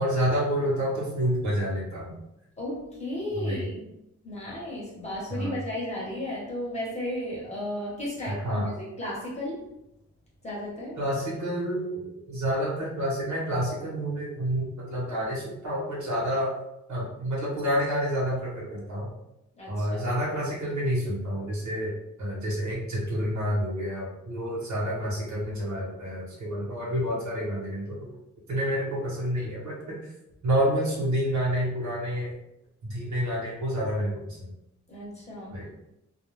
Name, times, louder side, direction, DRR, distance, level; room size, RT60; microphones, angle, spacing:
voice 1, 0.0-2.1 3.3-3.7 5.3-5.6 8.3-8.7 11.0-16.6 16.9-19.1 19.7-28.2 28.5-30.1 30.4-32.3 32.8-34.5 35.5-35.7, equal, 70° right, -6 dB, 0.9 m, -29 dB
voice 2, 2.6-3.8 4.2-9.6 10.4-11.0 19.6-20.0 34.9-35.6, left 1 dB, 20° left, -5 dB, 0.9 m, -34 dB
2.2 x 2.2 x 3.1 m, 0.85 s
wide cardioid pair, 165°, 30 cm